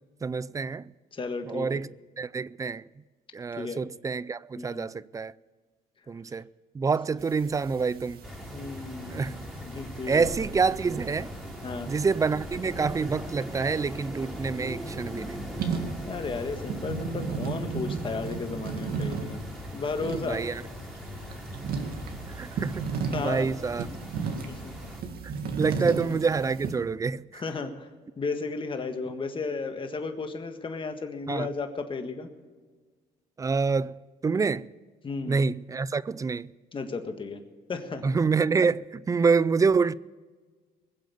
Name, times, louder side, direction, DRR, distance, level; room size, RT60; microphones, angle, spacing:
voice 1, 0.2-0.9 1.5-1.9 2.2-2.8 3.3-5.3 6.1-6.5 6.7-8.2 9.1-9.3 10.1-11.3 11.9-15.5 20.3-20.6 22.3-22.8 23.2-23.9 25.6-27.4 31.3-31.5 33.4-34.7 35.3-36.5 38.0-39.9, right 5 dB, 20° right, 0.4 m, -27 dB
voice 2, 1.1-1.8 3.6-3.8 4.5-4.9 8.5-10.3 11.6-11.9 16.1-19.4 19.7-20.4 23.1-23.5 24.5-24.7 25.9-26.0 27.3-27.9 28.2-32.3 35.0-35.4 36.7-37.4 37.7-38.1, left 4 dB, 30° left, 1.7 m, -34 dB
sound 1, 7.2-26.8, right 5 dB, 65° right, 2.0 m, -36 dB
sound 2, 8.2-25.0, left 1 dB, ahead, 2.8 m, -40 dB
21.0 x 7.8 x 6.9 m
cardioid pair, 110°, 17 cm